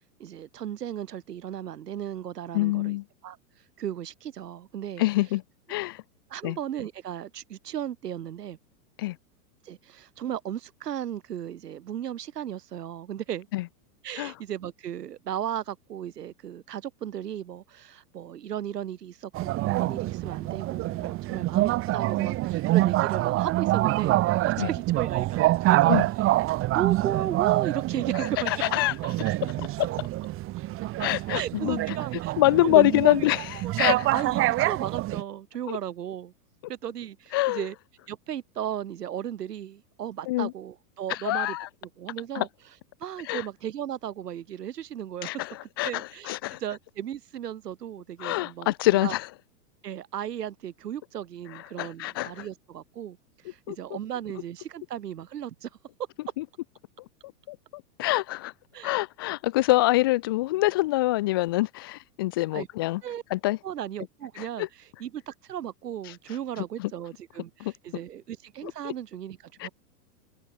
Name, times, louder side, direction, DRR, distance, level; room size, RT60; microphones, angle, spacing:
voice 1, 0.2-3.0 3.2-5.0 6.3-8.6 9.6-13.5 14.0-26.3 26.7-28.5 31.3-33.3 33.5-36.3 36.7-37.8 38.1-41.6 41.8-45.5 45.8-49.1 49.8-55.7 58.7-58.9 62.5-62.7 63.0-63.2 63.6-69.7, right 10 dB, 80° right, 5.7 m, -35 dB
voice 2, 2.5-3.0 5.0-5.4 5.7-6.0 6.4-6.6 9.0-9.2 13.5-13.6 14.2-14.3 24.6-24.7 25.9-26.1 28.5-28.9 29.3-29.7 31.0-31.8 32.4-33.4 33.8-34.1 35.7-35.8 37.3-37.7 40.3-40.5 41.1-41.7 42.3-42.5 43.3-43.4 45.2-46.6 48.2-49.2 51.8-52.5 53.7-53.8 56.4-56.5 57.5-58.5 58.8-63.0 63.3-63.6 64.4-64.7 66.8-66.9 67.6-67.7 68.6-68.9 69.6-69.7, left 18 dB, 20° left, 0.3 m, -25 dB
sound 1, 19.3-35.2, right 17 dB, 25° right, 1.5 m, -26 dB
hypercardioid pair, 140°, 47 cm